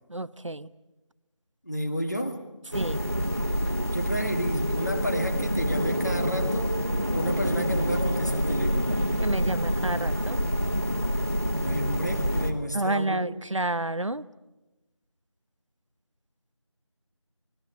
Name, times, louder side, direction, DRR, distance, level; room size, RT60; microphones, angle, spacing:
voice 1, 0.1-0.7 2.7-3.1 9.2-10.4 12.7-14.2, right 2 dB, 70° right, 14 dB, 0.9 m, -30 dB
voice 2, 1.7-2.4 3.9-6.7 7.1-9.0 11.6-13.3, equal, 35° left, 4 dB, 2.0 m, -31 dB
sound 1, 2.7-12.5, equal, 30° right, 1.6 m, -27 dB
27.5 x 20.5 x 8.3 m, 1.1 s
figure-of-eight pair, 180°, 16 cm